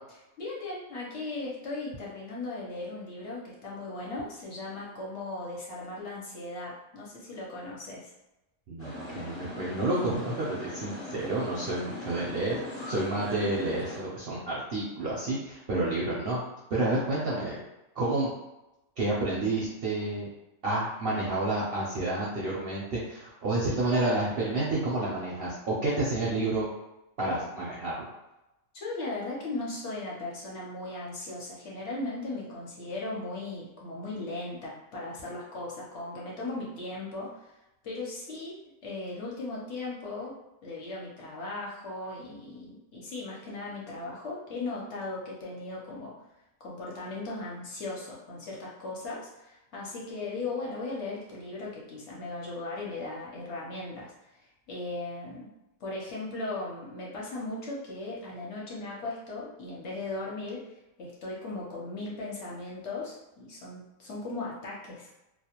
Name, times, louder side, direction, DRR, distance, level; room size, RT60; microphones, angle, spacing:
voice 1, 0.4-8.1 28.7-37.6 37.8-46.1 46.6-55.5 55.8-60.7 61.0-65.1, left 2 dB, 60° left, -4 dB, 0.9 m, -37 dB
voice 2, 8.7-12.5 12.8-16.4 16.7-17.6 18.0-18.3 19.0-20.3 20.6-26.7 27.2-27.9, right 2 dB, 60° right, -6 dB, 0.6 m, -29 dB
sound 1, 8.8-14.0, left 1 dB, 20° left, 0.4 m, -40 dB
2.4 x 2.1 x 2.8 m, 0.95 s
omnidirectional pair, 1.5 m